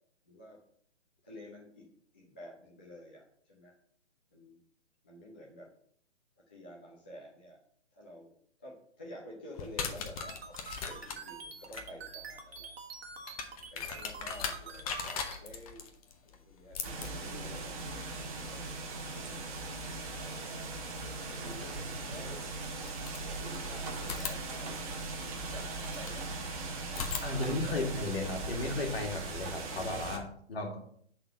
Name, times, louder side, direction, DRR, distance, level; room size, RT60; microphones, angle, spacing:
voice 1, 0.2-0.6 1.2-1.9 2.1-3.7 4.3-4.6 5.0-5.7 6.5-7.6 7.9-8.3 8.6-12.7 13.5-15.8 16.2-18.0 18.3-18.7 19.5-20.4 21.3-22.4 23.2-24.7 25.3-26.5 26.9-27.9, equal, 10° left, -4 dB, 0.3 m, -50 dB
sound 1, 9.5-20.3 21.8-21.9 22.6-23.6 24.0-26.3 26.9-28.9, left 6 dB, 30° left, 0.8 m, -42 dB
sound 2, 10.2-15.4, right 5 dB, 60° right, 1.4 m, -46 dB
sound 3, 16.8-30.2, right 3 dB, 30° right, 1.2 m, -39 dB
voice 2, 27.2-30.8, left 2 dB, 55° left, 2 dB, 1.9 m, -35 dB
6.2 x 4.0 x 6.1 m, 0.64 s
figure-of-eight pair, 135°, 35 cm